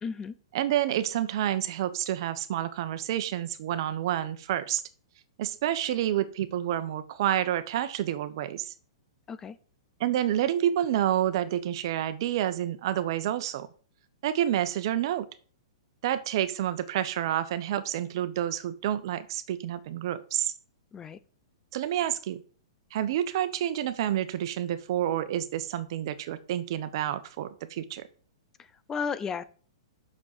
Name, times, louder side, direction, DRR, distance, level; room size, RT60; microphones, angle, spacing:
voice 1, 0.0-0.4 9.3-9.6 20.9-21.2 28.6-29.4, left 6 dB, 20° left, 15 dB, 0.6 m, -34 dB
voice 2, 0.5-4.8 5.4-8.7 10.0-13.7 14.2-15.3 16.0-20.5 21.7-22.4 22.9-28.0, right 11 dB, 55° right, 12 dB, 1.1 m, -29 dB
6.5 x 6.2 x 7.4 m, 0.43 s
hypercardioid pair, 135°, 3 cm